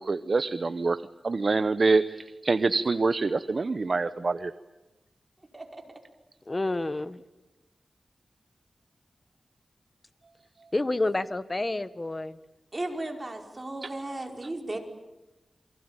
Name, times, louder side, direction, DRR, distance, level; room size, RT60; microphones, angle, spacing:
voice 1, 0.0-4.5 13.8-13.9, right 3 dB, 55° right, 12 dB, 0.9 m, -26 dB
voice 2, 6.5-7.2 10.7-12.4, left 2 dB, 30° left, 14 dB, 1.3 m, -29 dB
voice 3, 12.7-14.8, right 2 dB, 30° right, 3 dB, 5.0 m, -35 dB
28.5 x 23.5 x 9.0 m, 1.0 s
wide cardioid pair, 75°, 0 cm